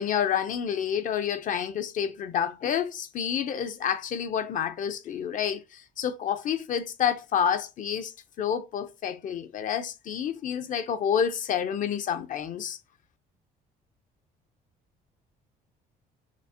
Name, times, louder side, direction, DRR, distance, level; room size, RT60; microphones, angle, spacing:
voice 1, 0.0-8.1 8.4-12.8, left 8 dB, 50° left, 0.5 m, -29 dB
5.9 x 2.0 x 2.7 m
cardioid pair, 110°, 17 cm